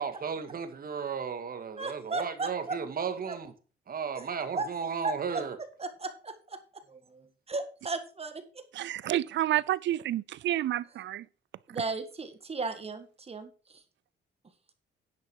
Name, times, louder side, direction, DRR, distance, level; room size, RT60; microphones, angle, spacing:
voice 1, 0.0-3.5 3.9-5.6, right 6 dB, 45° right, 2.0 m, -34 dB
voice 2, 1.8-2.8 3.3-3.4 4.2-4.3 4.5-4.7 5.0-5.4 5.8-6.6 6.9-8.4 11.7-13.8, right 3 dB, 30° right, 1.7 m, -35 dB
voice 3, 8.7-11.2, right 13 dB, 70° right, 0.5 m, -29 dB
10.5 x 7.2 x 4.7 m
cardioid pair, 90°, 20 cm